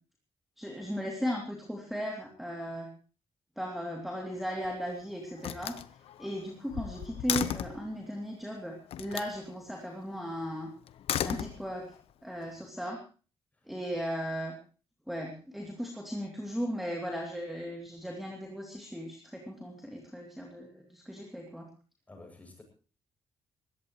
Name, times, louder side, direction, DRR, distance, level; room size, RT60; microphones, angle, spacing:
voice 1, 0.6-2.9 3.6-5.8 6.2-10.7 11.2-11.9 12.2-13.0 13.7-14.5 15.1-21.7, equal, ahead, 1 dB, 2.9 m, -37 dB
Slam, 4.3-4.9 5.4-7.9 8.9-9.4 10.9-12.0, left 10 dB, 75° left, 0.9 m, -35 dB
voice 2, 22.1-22.6, left 2 dB, 15° left, 3 dB, 7.4 m, -51 dB
21.5 x 17.0 x 3.2 m, 0.37 s
cardioid pair, 150°, 10 cm